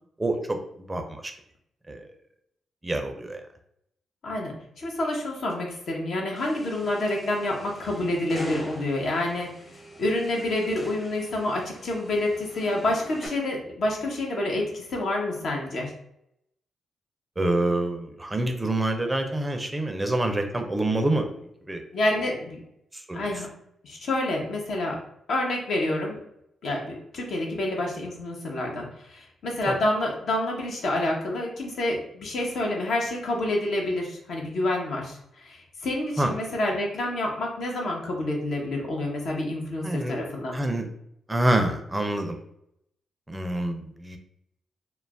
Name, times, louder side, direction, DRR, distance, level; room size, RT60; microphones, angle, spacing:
voice 1, 0.2-1.3 1.9-2.0 2.8-3.4 17.4-21.3 21.7-21.8 22.9-23.3 29.7-29.8 36.2-36.3 39.8-40.1 40.5-40.9 41.3-42.4 43.3-44.2, right 1 dB, 20° right, 5 dB, 0.4 m, -26 dB
voice 2, 4.2-9.5 10.0-15.9 21.9-22.6 23.1-23.5 23.8-25.0 25.3-26.2 26.6-40.5, left 1 dB, 65° left, -1 dB, 0.7 m, -28 dB
sound 1, 6.4-13.3, equal, 30° left, 0.8 m, -42 dB
2.3 x 2.0 x 3.4 m, 0.75 s
hypercardioid pair, 45°, 0 cm